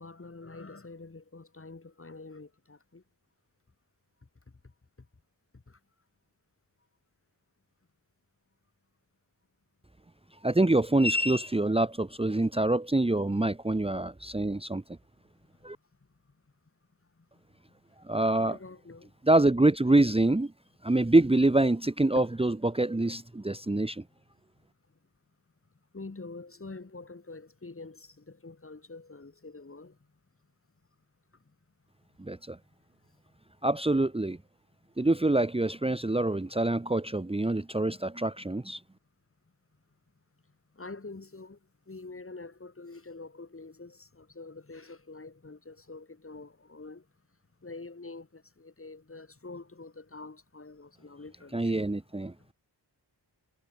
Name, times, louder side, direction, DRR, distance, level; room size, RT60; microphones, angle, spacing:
voice 1, 0.0-3.0 5.5-5.8 18.4-19.1 22.2-22.3 25.9-30.0 40.7-41.6 41.9-47.1 47.6-51.9, left 3 dB, 30° left, 2.4 m, -46 dB
voice 2, 10.4-14.8 15.6-15.8 18.1-18.6 19.3-20.5 20.8-24.0 32.2-32.6 33.6-34.4 35.0-38.8 51.5-52.3, right 2 dB, 15° right, 1.1 m, -25 dB
wide cardioid pair, 80°, 43 cm